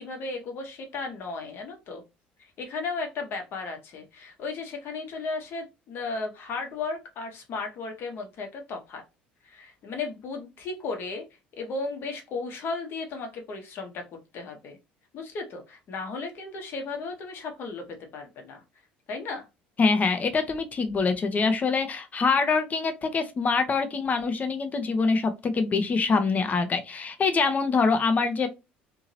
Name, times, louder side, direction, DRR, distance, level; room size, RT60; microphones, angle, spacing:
voice 1, 0.0-2.0 2.4-9.0 9.4-11.2 11.6-14.0 14.3-14.8 15.1-18.6 19.1-19.5, left 3 dB, 50° left, 1.0 m, -35 dB
voice 2, 19.8-28.5, left 4 dB, 30° left, 0.7 m, -24 dB
2.8 x 2.8 x 2.7 m
figure-of-eight pair, 60°, 5 cm